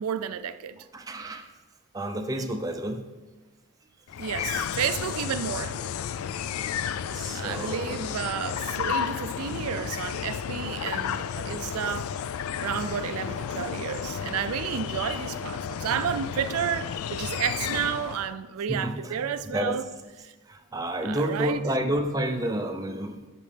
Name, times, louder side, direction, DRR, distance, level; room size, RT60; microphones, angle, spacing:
voice 1, 0.0-0.8 4.2-5.9 7.3-12.1 12.6-19.8 20.2-20.3 21.0-21.6, right 8 dB, 85° right, 0.4 m, -31 dB
voice 2, 0.9-1.5 1.9-3.0 4.4-4.5 7.1-8.1 9.8-9.9 12.8-13.0 13.4-13.5 18.7-19.8 20.5-23.3, right 1 dB, 15° right, 0.5 m, -30 dB
sound 1, 4.1-18.3, left 8 dB, 80° left, 0.3 m, -32 dB
13.0 x 5.2 x 3.3 m
head